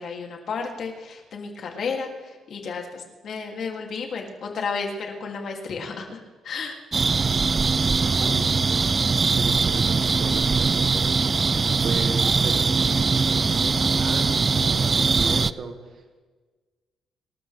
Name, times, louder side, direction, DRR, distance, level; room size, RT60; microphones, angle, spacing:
voice 1, 0.0-6.8, left 5 dB, 60° left, 1 dB, 2.8 m, -32 dB
sound 1, 6.9-15.5, right 4 dB, 35° right, 0.4 m, -21 dB
voice 2, 8.1-11.6 11.8-16.2, right 4 dB, 60° right, 4 dB, 1.9 m, -35 dB
26.5 x 13.0 x 3.5 m, 1.3 s
cardioid pair, 90°, 0 cm